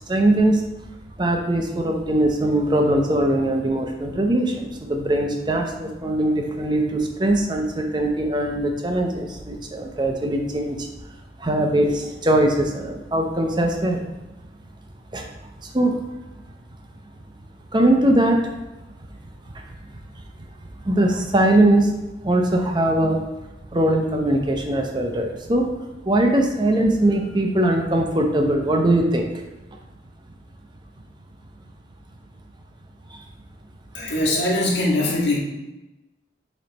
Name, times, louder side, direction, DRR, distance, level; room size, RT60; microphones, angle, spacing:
voice 1, 0.1-0.6 1.2-10.9 11.4-14.0 15.1-15.3 15.6-16.0 17.7-18.4 19.5-19.6 20.2-20.3 20.8-21.9 22.2-23.2 23.7-25.7 26.0-29.3 33.1-33.2, right 1 dB, 25° right, 2 dB, 0.7 m, -21 dB
voice 2, 33.9-35.4, left 1 dB, 80° left, -4 dB, 1.8 m, -21 dB
7.7 x 3.2 x 4.1 m, 1.0 s
head